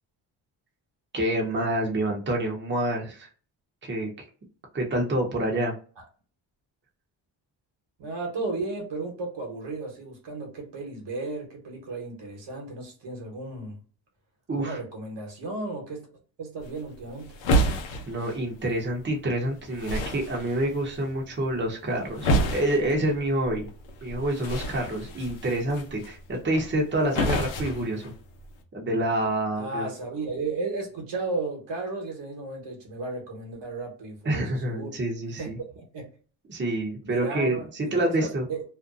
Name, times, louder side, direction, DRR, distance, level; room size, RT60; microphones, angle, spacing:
voice 1, 1.1-3.3 3.8-4.2 4.7-5.7 14.5-14.8 18.1-23.7 24.0-28.0 28.7-29.9 34.2-35.6 36.5-38.4, right 1 dB, 25° right, 0.8 m, -27 dB
voice 2, 8.0-13.8 14.5-16.1 16.4-17.4 29.5-35.0 35.4-36.1 37.0-38.6, right 3 dB, 65° right, 1.2 m, -34 dB
sound 1, 16.6-28.6, right 1 dB, 85° left, 0.7 m, -31 dB
2.6 x 2.2 x 2.4 m
cardioid pair, 75°, 45 cm